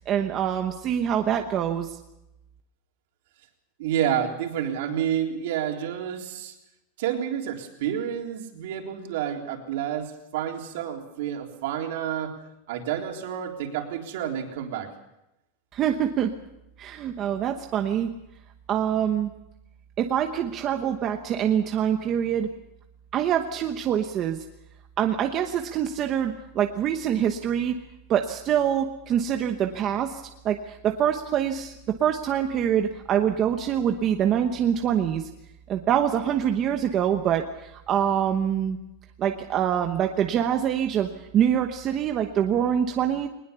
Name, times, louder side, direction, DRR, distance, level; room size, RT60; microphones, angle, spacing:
voice 1, 0.1-2.0 15.7-16.3 16.8-18.1 18.7-19.3 20.0-22.5 23.1-24.4 25.0-27.8 28.1-35.3 35.7-38.8 39.2-43.3, right 9 dB, 25° right, 5 dB, 1.0 m, -25 dB
voice 2, 3.8-6.5 7.0-12.4 12.7-14.9, right 9 dB, 60° right, 2 dB, 3.7 m, -29 dB
21.5 x 20.0 x 7.0 m, 0.89 s
supercardioid pair, 175°, 0 cm